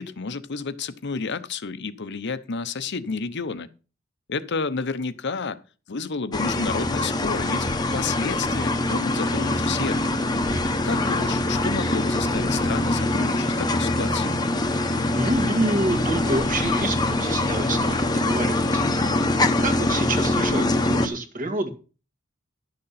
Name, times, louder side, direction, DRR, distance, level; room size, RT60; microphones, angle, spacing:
voice 1, 0.0-3.7 4.3-5.6 5.9-7.7 7.9-10.0 10.8-14.3, left 4 dB, 55° left, 0.8 m, -30 dB
sound 1, 6.3-21.1, left 2 dB, 20° left, 0.9 m, -23 dB
voice 2, 10.9-11.3 15.1-18.9 19.6-21.7, right 2 dB, 40° right, 1.8 m, -28 dB
11.5 x 6.8 x 5.7 m
head